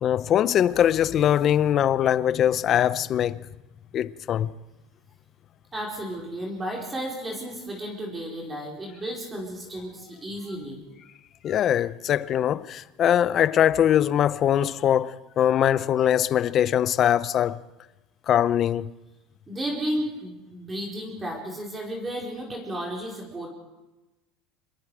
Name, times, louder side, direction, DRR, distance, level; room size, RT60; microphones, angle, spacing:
voice 1, 0.0-3.4 3.9-4.5 11.4-17.6 18.3-18.9, left 10 dB, 40° left, 0.7 m, -22 dB
voice 2, 5.7-10.8 19.5-23.5, right 1 dB, 15° right, 4.7 m, -33 dB
27.0 x 22.0 x 4.9 m
supercardioid pair, 135°, 0 cm